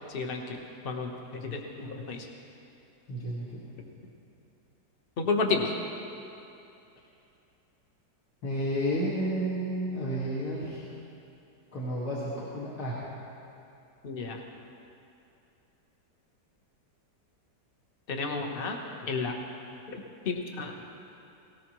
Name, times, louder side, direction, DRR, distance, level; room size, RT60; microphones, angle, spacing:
voice 1, 0.1-2.3 5.2-5.7 14.0-14.4 18.1-19.4 19.9-20.7, left 4 dB, 35° left, 2 dB, 1.2 m, -32 dB
voice 2, 3.1-3.6 8.4-10.8 11.7-13.1, equal, 60° left, -7 dB, 2.4 m, -31 dB
18.0 x 18.0 x 3.1 m, 2.7 s
omnidirectional pair, 2.0 m